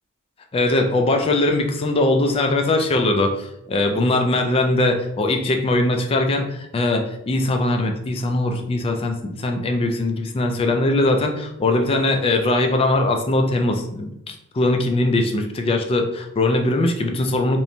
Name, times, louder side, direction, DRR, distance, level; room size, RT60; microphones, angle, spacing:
voice 1, 0.5-17.6, left 2 dB, 25° left, 4 dB, 0.3 m, -21 dB
2.9 x 2.1 x 2.6 m, 0.82 s
head